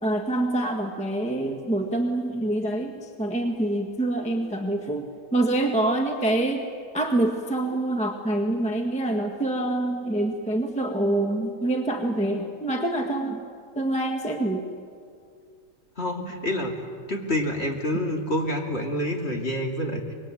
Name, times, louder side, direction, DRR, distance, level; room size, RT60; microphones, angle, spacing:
voice 1, 0.0-6.6 6.9-13.4 13.7-14.7, right 1 dB, 5° left, 3 dB, 1.6 m, -26 dB
voice 2, 16.0-16.8 17.1-20.1, left 1 dB, 35° left, 1 dB, 2.8 m, -27 dB
25.0 x 21.5 x 9.0 m, 2.3 s
omnidirectional pair, 2.0 m